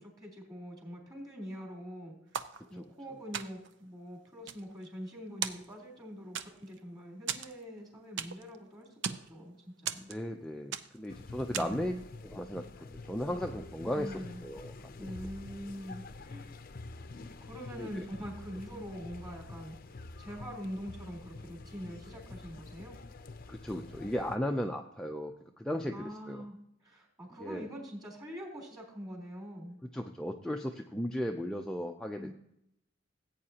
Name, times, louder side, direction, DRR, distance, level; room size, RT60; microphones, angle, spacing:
voice 1, 0.0-2.4 2.7-10.1 11.5-12.0 13.9-14.4 15.0-16.5 17.4-19.8 20.2-23.0 25.9-29.8 32.1-32.3, equal, 20° right, -3 dB, 3.6 m, -44 dB
sound 1, 2.3-3.0 3.3-3.8 4.3-5.1 5.4-6.0 6.4-6.8 7.3-8.6 8.8-9.3 9.9-10.4 10.7-11.1 11.5-11.9, right 8 dB, 65° right, 0.6 m, -38 dB
voice 2, 10.1-11.9 12.2-14.1 14.4-14.7 17.8-18.1 23.5-26.4 27.4-27.7 29.9-32.3, equal, 5° left, 2 dB, 0.5 m, -36 dB
sound 2, 11.1-24.4, left 3 dB, 50° left, 0.6 m, -47 dB
16.0 x 8.5 x 2.9 m, 0.77 s
head